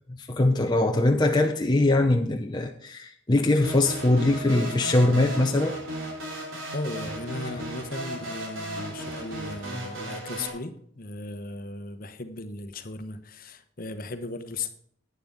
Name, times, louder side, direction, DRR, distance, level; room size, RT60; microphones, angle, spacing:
voice 1, 0.1-5.8, left 2 dB, 20° left, 3 dB, 0.7 m, -22 dB
sound 1, 3.6-10.5, right 1 dB, 80° right, 3.4 m, -35 dB
voice 2, 6.7-14.7, left 2 dB, 45° left, 9 dB, 1.0 m, -36 dB
11.0 x 9.5 x 3.7 m, 0.64 s
head